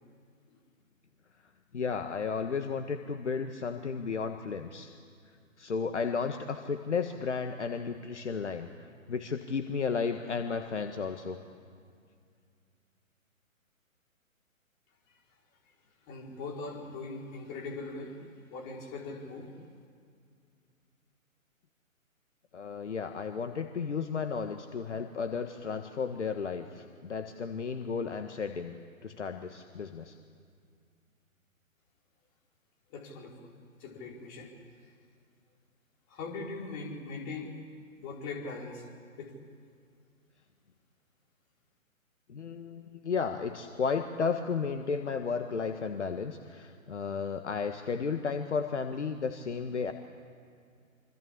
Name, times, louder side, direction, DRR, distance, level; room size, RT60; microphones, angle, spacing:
voice 1, 1.7-5.0 5.6-11.4 22.5-30.1 42.3-49.9, left 5 dB, 55° left, 6 dB, 1.7 m, -33 dB
voice 2, 16.1-18.2 18.5-19.5 32.9-33.5 33.8-34.5 36.1-37.6 38.0-38.8 39.2-39.3, left 3 dB, 25° left, -1 dB, 4.6 m, -40 dB
27.0 x 25.0 x 8.6 m, 2.3 s
figure-of-eight pair, 130°, 41 cm